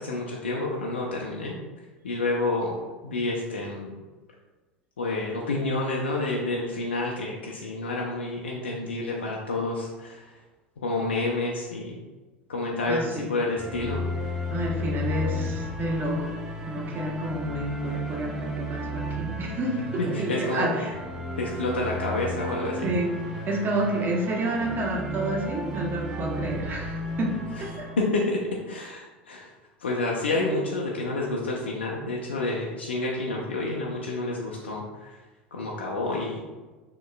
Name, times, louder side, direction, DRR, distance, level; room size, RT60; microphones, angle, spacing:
voice 1, 0.0-1.6 2.0-2.8 3.0-4.0 5.0-10.3 10.8-12.0 12.5-14.0 20.0-20.7 21.4-22.9 28.0-28.4 28.7-29.5 29.8-35.1 35.5-36.4, left 2 dB, 80° left, -2 dB, 0.6 m, -29 dB
voice 2, 12.9-13.3 14.5-16.3 16.7-21.0 22.8-27.9, right 1 dB, 35° right, 0 dB, 1.0 m, -30 dB
sound 1, 13.6-28.1, equal, 10° right, 0.9 m, -33 dB
6.2 x 3.0 x 2.2 m, 1.2 s
hypercardioid pair, 80°, 6 cm